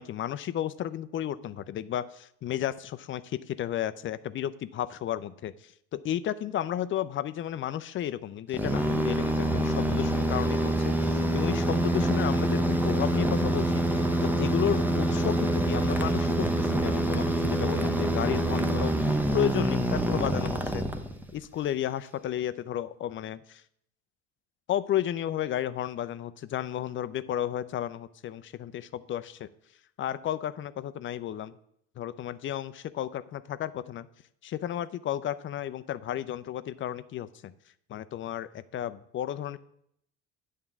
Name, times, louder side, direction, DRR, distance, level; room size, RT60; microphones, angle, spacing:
voice 1, 0.0-20.9 21.3-23.6 24.7-29.5 30.0-31.5 32.0-34.1 34.4-37.5 37.9-39.6, left 11 dB, 40° left, 15 dB, 0.4 m, -33 dB
sound 1, 8.5-21.4, right 1 dB, 5° right, 0.7 m, -26 dB
8.8 x 3.7 x 6.9 m, 0.73 s
supercardioid pair, 85°, 33 cm